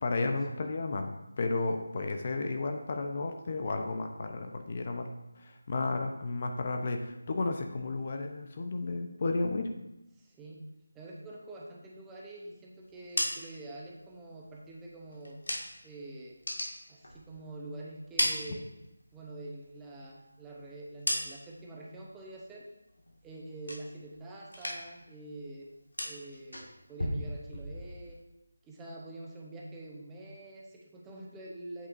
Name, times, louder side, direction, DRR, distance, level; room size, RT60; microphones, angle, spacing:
voice 1, 0.0-1.1 1.4-5.1 5.4-9.7, left 3 dB, 35° left, 4 dB, 0.5 m, -33 dB
voice 2, 10.2-10.6 10.9-15.4 15.8-16.4 16.9-18.7 19.1-22.7 23.2-25.7 26.0-28.2 28.6-31.9, right 2 dB, 10° right, -3 dB, 0.7 m, -46 dB
sound 1, 12.8-15.9 16.3-17.6 17.9-19.2 19.6-21.7 22.1-22.5 22.9-24.2 24.5-25.1 25.3-28.2, left 1 dB, 85° left, 1.8 m, -37 dB
8.2 x 5.7 x 2.6 m, 0.92 s
figure-of-eight pair, 165°, 0 cm